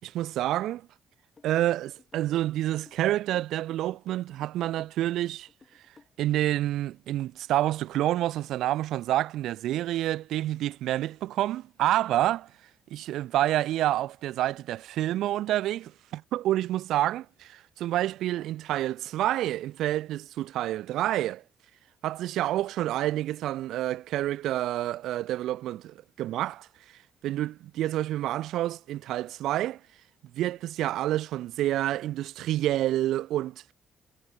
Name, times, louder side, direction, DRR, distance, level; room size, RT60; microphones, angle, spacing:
voice 1, 0.0-0.9 1.4-5.5 6.2-12.5 12.9-21.4 22.0-26.7 27.2-29.8 30.3-33.6, right 14 dB, 85° right, 1.6 m, -28 dB
sound 1, 1.4-6.6, left 4 dB, 35° left, 6.7 m, -58 dB
cardioid pair, 90°, 0 cm